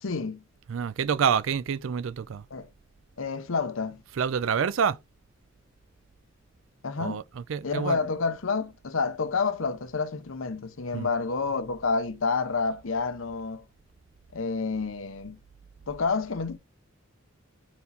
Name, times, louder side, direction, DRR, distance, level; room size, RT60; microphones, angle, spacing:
voice 1, 0.0-0.4 2.5-2.7 3.2-4.0 6.8-7.2 7.6-13.6 14.3-15.4 15.9-16.6, left 4 dB, 90° left, 0.8 m, -29 dB
voice 2, 0.7-2.4 4.2-5.0 7.0-8.0 10.9-11.1, right 7 dB, 80° right, 0.4 m, -27 dB
5.2 x 4.5 x 4.1 m
head